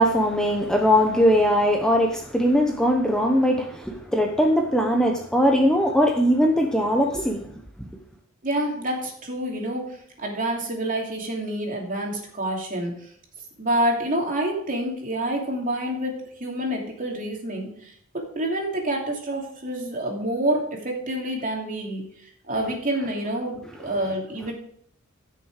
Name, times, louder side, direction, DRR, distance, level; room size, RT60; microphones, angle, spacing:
voice 1, 0.0-7.5, equal, 5° left, 2 dB, 0.9 m, -20 dB
voice 2, 8.4-12.9 13.6-17.7 18.1-22.0 22.4-24.5, right 1 dB, 40° right, 0 dB, 2.8 m, -27 dB
14.5 x 6.6 x 4.9 m, 0.64 s
head